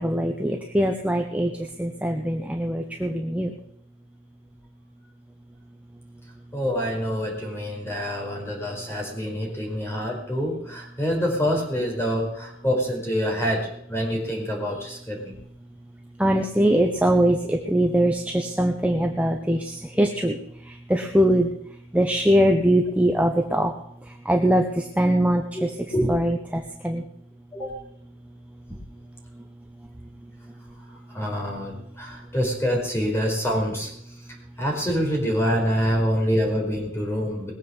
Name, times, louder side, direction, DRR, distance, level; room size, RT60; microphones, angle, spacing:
voice 1, 0.0-1.5 1.8-3.5 16.2-20.3 20.9-21.5 21.9-23.7 24.3-25.7 26.1-27.0, equal, 5° right, 2 dB, 1.0 m, -22 dB
voice 2, 6.5-15.4 25.5-25.6 25.9-26.1 27.5-27.8 31.1-33.9 34.6-37.5, equal, 15° left, 0 dB, 4.8 m, -26 dB
20.5 x 7.7 x 7.2 m, 0.73 s
head